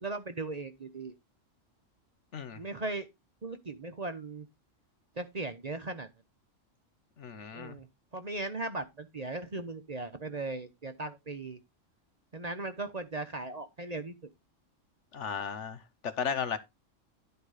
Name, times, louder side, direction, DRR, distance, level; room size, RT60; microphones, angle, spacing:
voice 1, 0.0-1.1 2.5-3.1 3.4-4.5 5.2-6.1 7.5-7.9 8.1-11.6 12.3-14.2, right 2 dB, 35° right, 0.8 m, -38 dB
voice 2, 7.2-7.8 15.1-15.8 16.2-16.6, left 7 dB, 65° left, 1.3 m, -34 dB
11.0 x 4.7 x 4.9 m
omnidirectional pair, 1.3 m